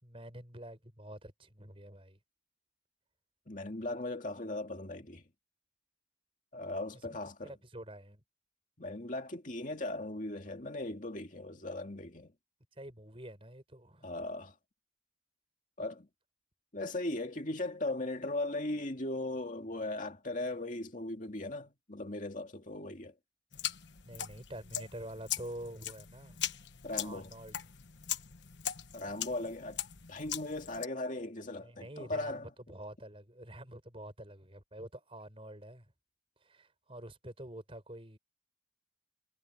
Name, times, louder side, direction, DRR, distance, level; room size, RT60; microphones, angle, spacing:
voice 1, 0.0-2.2 7.1-8.2 12.8-14.1 24.0-26.4 27.0-27.6 31.6-35.9 36.4-38.2, right 1 dB, 30° right, 6.1 m, -47 dB
voice 2, 3.5-5.2 6.5-7.5 8.8-12.3 14.0-14.5 15.8-16.1 16.7-23.1 26.8-27.3 28.9-29.8 30.1-32.5, left 2 dB, 40° left, 2.3 m, -38 dB
sound 1, 23.5-30.9, left 11 dB, 65° left, 1.2 m, -40 dB
head